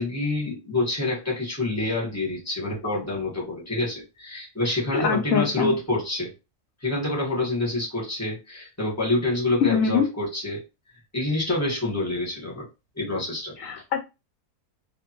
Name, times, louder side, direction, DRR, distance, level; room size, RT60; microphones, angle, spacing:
voice 1, 0.0-6.3 6.8-10.6 11.1-12.7 12.9-13.5, left 2 dB, 10° left, 1.2 m, -27 dB
voice 2, 4.9-5.7 9.6-10.1 13.6-14.1, left 7 dB, 70° left, 0.8 m, -23 dB
2.5 x 2.5 x 2.9 m
omnidirectional pair, 1.7 m